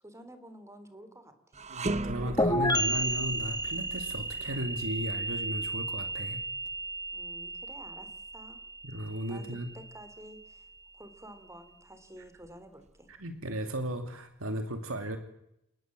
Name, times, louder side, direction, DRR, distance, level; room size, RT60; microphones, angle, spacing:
voice 1, 0.0-1.6 7.1-8.6 9.3-9.5 9.7-10.7 10.9-13.1, right 1 dB, 15° right, 10 dB, 3.4 m, -50 dB
sound 1, 1.5-10.8 11.2-11.4 12.2-13.1, right 2 dB, 35° right, 1.1 m, -41 dB
voice 2, 1.7-6.4 8.8-9.7 13.1-15.2, equal, 80° right, 6 dB, 2.6 m, -35 dB
sound 2, 2.4-9.9, right 1 dB, 20° left, 2.3 m, -32 dB
29.5 x 18.5 x 7.7 m, 0.78 s
head